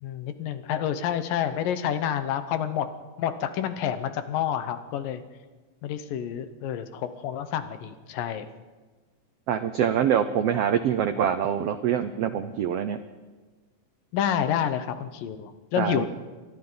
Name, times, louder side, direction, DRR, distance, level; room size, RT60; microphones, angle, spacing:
voice 1, 0.0-2.9 3.2-5.2 5.8-8.5 14.1-16.1, left 9 dB, 85° left, 10 dB, 2.8 m, -28 dB
voice 2, 9.5-13.0 15.8-16.1, right 9 dB, 90° right, 9 dB, 1.3 m, -25 dB
29.0 x 24.0 x 4.0 m, 1.3 s
omnidirectional pair, 3.9 m